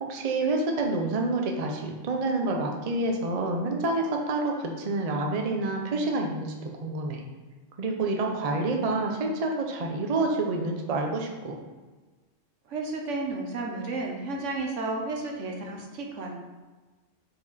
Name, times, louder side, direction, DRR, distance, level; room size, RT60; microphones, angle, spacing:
voice 1, 0.0-7.2 7.8-11.5, right 2 dB, 40° right, 2 dB, 0.6 m, -28 dB
voice 2, 12.7-16.3, right 2 dB, 75° right, 1 dB, 1.2 m, -32 dB
4.9 x 4.8 x 4.1 m, 1.3 s
omnidirectional pair, 1.3 m